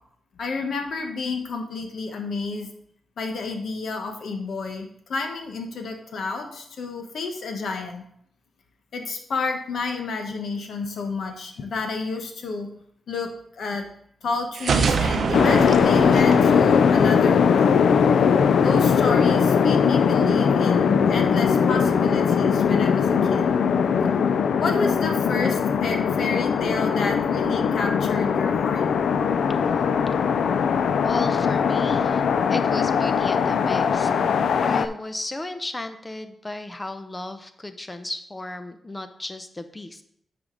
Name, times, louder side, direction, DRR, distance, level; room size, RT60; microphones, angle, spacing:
voice 1, 0.4-2.7 3.2-8.0 8.9-12.7 13.1-13.9 14.2-17.8 18.6-23.5 24.6-28.9, left 4 dB, 70° left, 4 dB, 1.1 m, -30 dB
sound 1, 14.5-17.4, right 5 dB, 65° right, 0.7 m, -25 dB
sound 2, 15.3-34.9, left 6 dB, 85° left, 0.4 m, -20 dB
voice 2, 31.0-34.1 34.6-40.0, left 2 dB, 15° left, 9 dB, 0.6 m, -34 dB
9.3 x 5.0 x 3.8 m, 0.70 s
wide cardioid pair, 160°, 0 cm